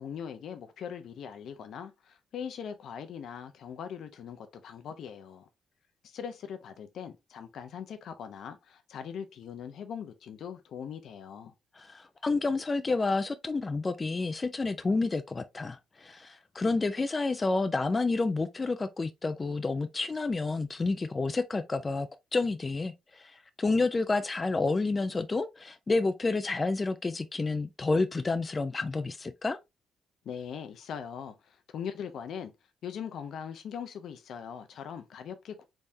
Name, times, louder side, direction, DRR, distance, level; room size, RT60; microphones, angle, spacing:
voice 1, 0.0-5.5 6.0-11.5 30.2-32.5 32.8-35.6, left 7 dB, 70° left, 0.6 m, -41 dB
voice 2, 11.8-29.6, left 3 dB, 25° left, 0.4 m, -29 dB
3.5 x 3.2 x 2.6 m
cardioid pair, 90°, 0 cm